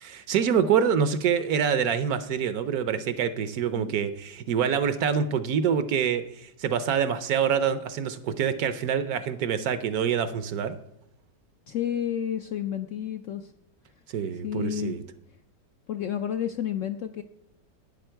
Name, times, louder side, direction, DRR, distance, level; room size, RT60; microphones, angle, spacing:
voice 1, 0.0-10.8 14.1-15.0, right 7 dB, 65° right, 12 dB, 1.1 m, -26 dB
voice 2, 11.7-13.5 14.4-15.0 15.9-17.2, left 9 dB, 70° left, 7 dB, 0.7 m, -30 dB
11.5 x 9.5 x 4.5 m, 0.83 s
omnidirectional pair, 1.8 m